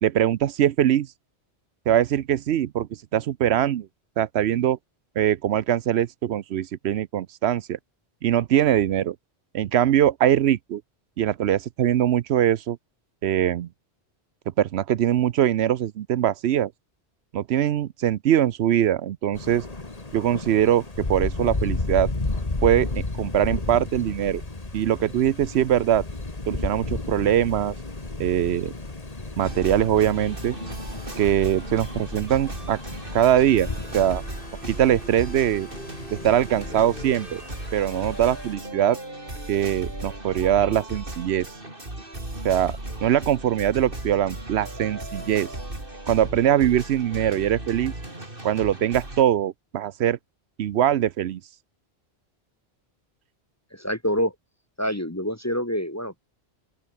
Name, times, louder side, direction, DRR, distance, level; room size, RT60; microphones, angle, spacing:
voice 1, 0.0-1.1 1.9-3.9 4.2-4.8 5.2-7.8 8.2-9.2 9.5-10.8 11.2-12.8 13.2-13.7 14.6-16.7 17.3-19.6 20.1-22.1 22.6-24.4 24.7-26.0 26.5-27.7 28.2-28.7 29.4-30.6 31.2-32.8 33.1-33.7 33.9-34.2 34.7-35.7 36.1-37.4 37.7-39.0 39.5-41.5 42.4-45.5 46.1-47.9 48.4-50.2 50.6-51.4, right 11 dB, 75° right, 0.9 m, -22 dB
Thunder, 19.3-38.5, left 2 dB, 35° left, 2.2 m, -33 dB
sound 1, 29.4-49.2, right 1 dB, 55° right, 5.8 m, -36 dB
voice 2, 53.7-54.3 54.8-56.1, equal, 15° left, 1.1 m, -26 dB
open air
omnidirectional pair, 1.1 m